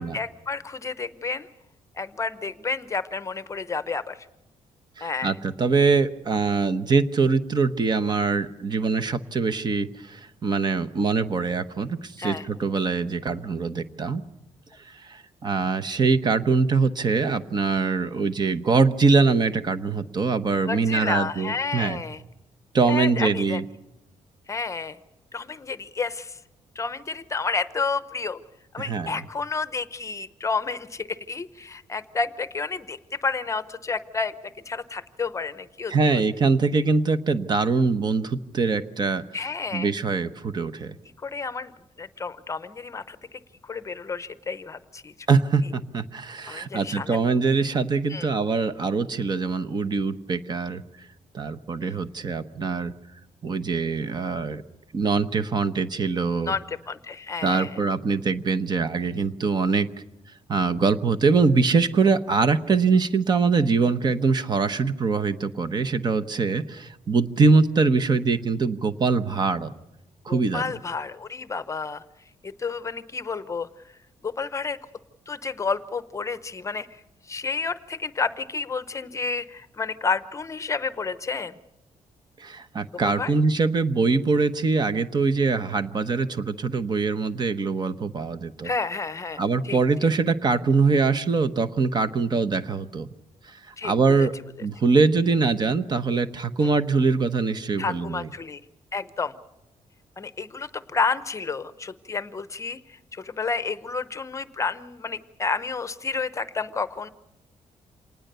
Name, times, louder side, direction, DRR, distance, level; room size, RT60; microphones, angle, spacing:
voice 1, 0.0-1.5 1.9-4.3 5.0-5.3 12.2-12.5 20.7-22.2 22.9-23.6 24.5-25.0 25.3-26.4 26.7-28.4 28.7-36.2 39.3-39.9 41.2-41.7 42.0-45.1 46.5-47.2 48.1-48.3 51.8-51.9 56.5-57.8 70.3-72.0 72.4-73.7 74.2-74.8 75.3-81.6 83.0-83.3 88.6-89.4 89.6-89.8 93.8-93.9 94.2-94.3 96.6-96.7 97.8-98.6 98.9-99.3 100.2-107.1, left 4 dB, 25° left, 13 dB, 0.8 m, -30 dB
voice 2, 5.0-14.2 14.8-22.0 22.7-23.6 28.8-29.1 35.9-39.2 39.7-41.0 45.3-50.8 51.3-52.9 53.4-54.6 54.9-56.5 57.4-59.9 60.5-69.7 70.2-70.6 82.4-88.7 89.4-93.1 93.4-94.3 94.6-98.3, right 4 dB, 35° right, 11 dB, 1.0 m, -23 dB
26.5 x 19.5 x 6.8 m, 0.89 s
cardioid pair, 155°, 12 cm